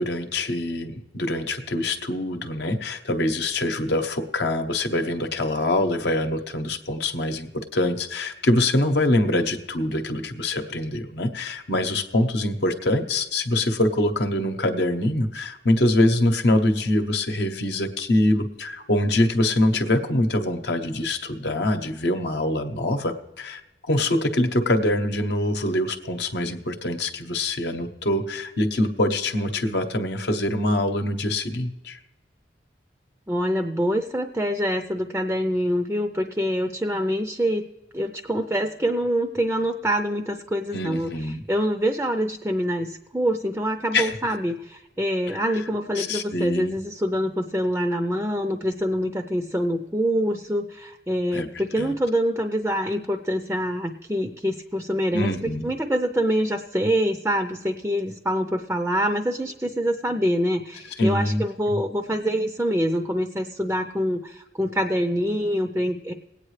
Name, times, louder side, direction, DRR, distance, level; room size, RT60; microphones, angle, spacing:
voice 1, 0.0-32.0 40.7-41.4 43.9-44.2 45.3-45.4 46.0-46.8 51.3-51.5 51.8-51.9 55.1-55.7 61.0-61.8, left 1 dB, 65° left, 6 dB, 0.9 m, -24 dB
voice 2, 33.3-37.6 37.9-66.1, equal, 10° right, 6 dB, 0.5 m, -25 dB
20.5 x 8.8 x 3.2 m, 1.0 s
head